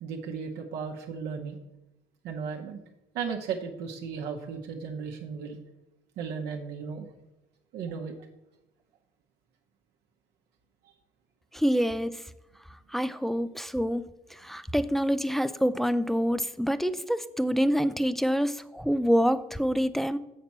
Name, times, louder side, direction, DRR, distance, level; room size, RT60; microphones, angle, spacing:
voice 1, 0.0-1.6 2.2-2.8 3.1-5.6 6.2-7.1 7.7-8.1 10.8-10.9, right 6 dB, 80° right, 1 dB, 0.9 m, -35 dB
voice 2, 11.5-12.1 12.9-14.1 14.4-20.2, equal, ahead, 12 dB, 0.3 m, -26 dB
7.5 x 4.2 x 5.9 m, 0.96 s
cardioid pair, 110°, 17 cm